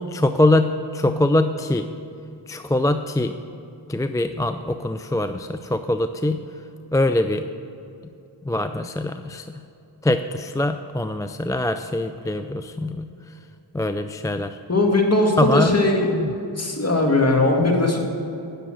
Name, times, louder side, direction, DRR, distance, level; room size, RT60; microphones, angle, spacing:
voice 1, 0.0-1.9 2.5-3.3 3.9-6.4 6.9-7.4 8.5-9.6 10.0-13.1 13.7-14.6 15.4-15.8 16.1-16.3, left 1 dB, 10° left, 8 dB, 0.4 m, -23 dB
voice 2, 14.7-16.1 16.6-18.0, left 2 dB, 35° left, 1 dB, 2.2 m, -19 dB
9.8 x 6.8 x 7.6 m, 2.7 s
cardioid pair, 40°, 45 cm